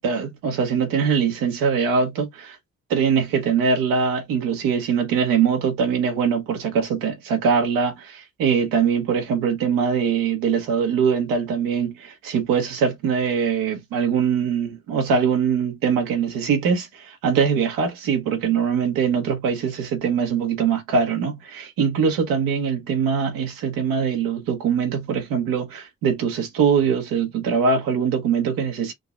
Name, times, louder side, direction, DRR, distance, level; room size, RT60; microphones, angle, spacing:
voice 1, 0.0-2.6 2.9-28.9, right 6 dB, 85° right, 1.1 m, -22 dB
3.7 x 2.8 x 2.4 m
hypercardioid pair, 45°, 34 cm